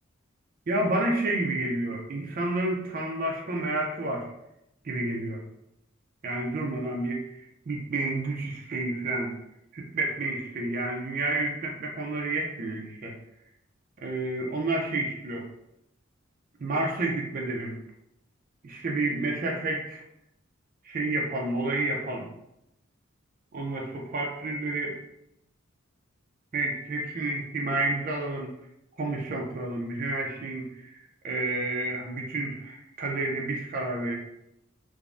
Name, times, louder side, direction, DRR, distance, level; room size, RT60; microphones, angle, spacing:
voice 1, 0.7-4.3 4.8-5.4 6.2-7.2 7.7-9.3 9.7-13.1 14.0-15.5 16.6-17.7 18.6-20.0 20.8-22.3 23.5-25.0 26.5-28.5 29.0-30.9 31.2-34.2, right 2 dB, 45° right, 0 dB, 0.4 m, -30 dB
3.4 x 2.0 x 2.4 m, 0.83 s
head